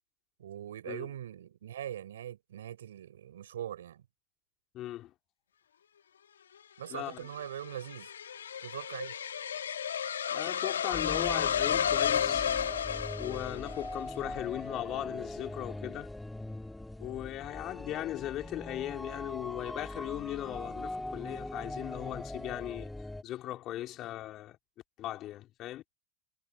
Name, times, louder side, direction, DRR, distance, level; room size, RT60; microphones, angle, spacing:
voice 1, 0.4-4.1 6.8-8.1 8.6-9.2, right 11 dB, 80° right, 5.5 m, -41 dB
voice 2, 4.7-5.1 6.9-7.3 10.3-12.5 13.2-16.1 17.0-22.9 23.2-24.6 25.0-25.8, left 14 dB, 50° left, 3.2 m, -38 dB
sound 1, 6.9-14.0, left 8 dB, 85° left, 1.4 m, -32 dB
sound 2, 10.9-23.2, left 1 dB, 5° left, 2.3 m, -41 dB
hypercardioid pair, 80°, 0 cm